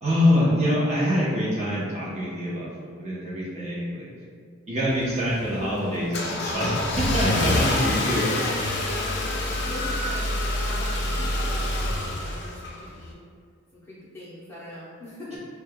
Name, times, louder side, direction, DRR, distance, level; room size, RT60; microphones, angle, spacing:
voice 1, 0.0-4.0 4.7-8.3, equal, 30° right, -7 dB, 0.8 m, -25 dB
Car / Engine starting, 4.9-13.1, left 1 dB, 55° left, 0.5 m, -27 dB
voice 2, 7.5-13.2 13.9-15.4, left 1 dB, 10° left, -9 dB, 0.8 m, -38 dB
6.5 x 2.3 x 2.2 m, 2.2 s
head